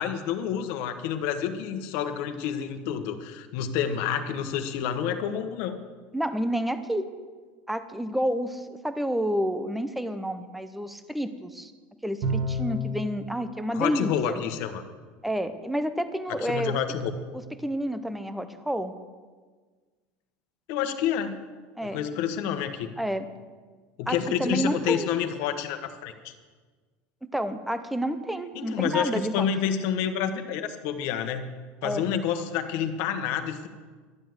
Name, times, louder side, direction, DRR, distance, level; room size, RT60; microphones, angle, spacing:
voice 1, 0.0-5.8 13.7-14.8 16.4-17.1 20.7-21.4 21.8-22.9 24.0-26.3 28.5-31.5 31.8-33.7, left 8 dB, 55° left, 8 dB, 1.2 m, -29 dB
voice 2, 6.1-7.1 7.7-11.7 12.0-14.4 15.2-16.8 17.6-18.9 21.8-22.0 23.0-23.3 24.1-25.1 27.3-29.5 31.8-32.0, equal, ahead, 11 dB, 0.6 m, -29 dB
Bowed string instrument, 12.2-13.1, equal, 50° right, 1.8 m, -28 dB
12.0 x 9.3 x 7.8 m, 1.5 s
cardioid pair, 165°, 5 cm